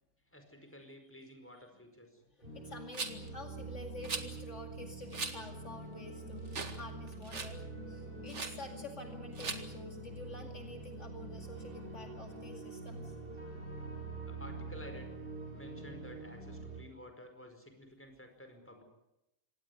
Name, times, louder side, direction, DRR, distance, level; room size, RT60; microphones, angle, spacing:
voice 1, 0.3-2.2 14.2-15.1 15.5-18.8, left 1 dB, 10° left, 5 dB, 4.9 m, -52 dB
voice 2, 2.3-13.2, left 2 dB, 55° left, 4 dB, 2.7 m, -49 dB
sound 1, 2.4-16.8, right 2 dB, 40° right, 8.4 m, -45 dB
Rattle, 2.9-3.3 4.0-4.3 5.1-5.4 5.8-5.9 6.5-6.8 7.1-7.5 8.3-8.5 9.3-9.6, right 4 dB, 55° right, 2.2 m, -39 dB
25.5 x 18.5 x 9.3 m, 0.92 s
omnidirectional pair, 1.4 m